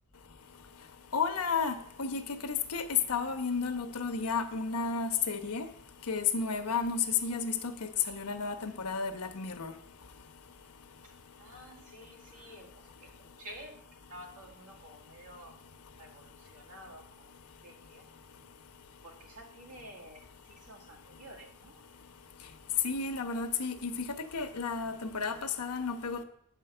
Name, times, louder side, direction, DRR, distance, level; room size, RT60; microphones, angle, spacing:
voice 1, 1.1-2.8 3.1-5.7 6.1-9.7 22.8-26.2, left 5 dB, 80° left, 8 dB, 1.0 m, -32 dB
voice 2, 11.4-12.7 13.4-13.8 14.1-15.6 16.0-16.3 16.5-17.1 17.6-18.1 19.0-20.2 20.5-21.7, equal, 85° right, 2 dB, 2.0 m, -50 dB
9.5 x 5.5 x 6.7 m, 0.71 s
head